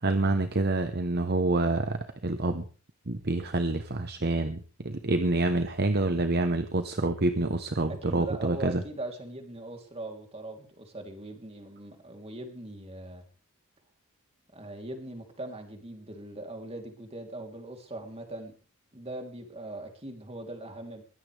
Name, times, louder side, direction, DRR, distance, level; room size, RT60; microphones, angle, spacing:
voice 1, 0.0-2.7 3.1-8.8, right 2 dB, 45° right, 8 dB, 1.1 m, -27 dB
voice 2, 7.9-13.2 14.5-18.6 18.9-21.0, right 2 dB, 25° right, 4 dB, 3.4 m, -40 dB
22.0 x 16.5 x 3.5 m, 0.38 s
head